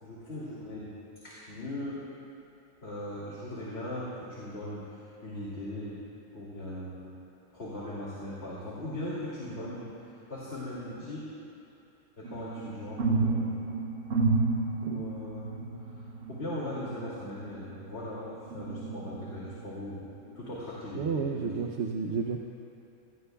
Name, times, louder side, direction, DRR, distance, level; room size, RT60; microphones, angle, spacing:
voice 1, 0.0-2.1 2.8-6.0 6.3-7.2 7.5-11.3 12.2-13.7 14.8-15.5 15.9-20.1 20.3-21.7, left 1 dB, 50° left, -7 dB, 2.9 m, -39 dB
sound 1, 12.2-18.0 18.5-19.6 20.1-20.3, right 3 dB, 80° right, 2.0 m, -31 dB
voice 2, 20.9-22.4, right 5 dB, 60° right, 1 dB, 1.0 m, -31 dB
28.0 x 18.0 x 2.4 m, 2.7 s
omnidirectional pair, 1.4 m